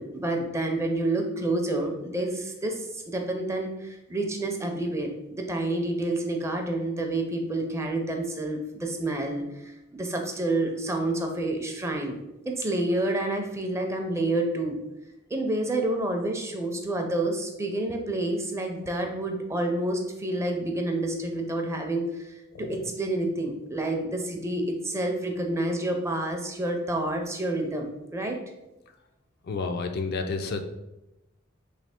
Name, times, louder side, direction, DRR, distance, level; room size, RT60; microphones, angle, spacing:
voice 1, 0.0-9.7 10.0-12.2 12.5-14.8 15.3-22.3 22.6-28.4, right 2 dB, 15° right, 3 dB, 0.5 m, -29 dB
voice 2, 29.5-30.6, left 4 dB, 50° left, 6 dB, 0.4 m, -30 dB
3.2 x 2.7 x 4.3 m, 0.95 s
head